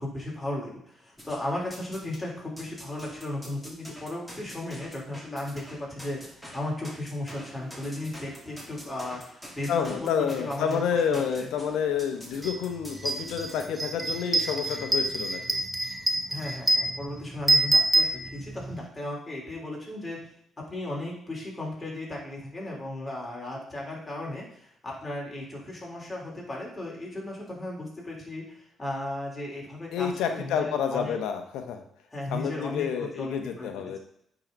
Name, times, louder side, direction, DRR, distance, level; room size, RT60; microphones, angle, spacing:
voice 1, 0.0-11.5 16.3-20.3 20.7-31.2 32.1-34.0, left 1 dB, 15° left, -4 dB, 3.5 m, -36 dB
sound 1, 1.2-2.2 2.6-13.7, equal, ahead, 2.3 m, -46 dB
voice 2, 9.7-15.6 29.9-31.8 32.3-34.0, left 7 dB, 90° left, 6 dB, 0.9 m, -29 dB
sound 2, 12.4-12.6 12.9-18.8, right 2 dB, 15° right, 0.9 m, -26 dB
9.1 x 4.0 x 5.2 m, 0.70 s
cardioid pair, 90°, 0 cm